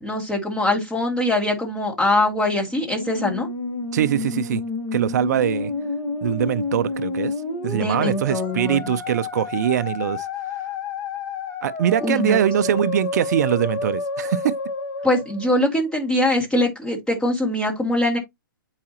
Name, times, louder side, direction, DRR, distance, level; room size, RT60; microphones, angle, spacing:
voice 1, 0.0-3.5 7.8-9.0 12.0-12.4 15.0-18.2, left 1 dB, 5° left, 2.2 m, -22 dB
Musical instrument, 2.6-16.0, left 3 dB, 20° left, 1.3 m, -30 dB
voice 2, 3.9-4.6 4.9-5.7 6.2-7.3 7.6-10.3 11.6-14.6, right 10 dB, 50° right, 0.4 m, -22 dB
8.5 x 4.8 x 2.8 m
hypercardioid pair, 155°, 12 cm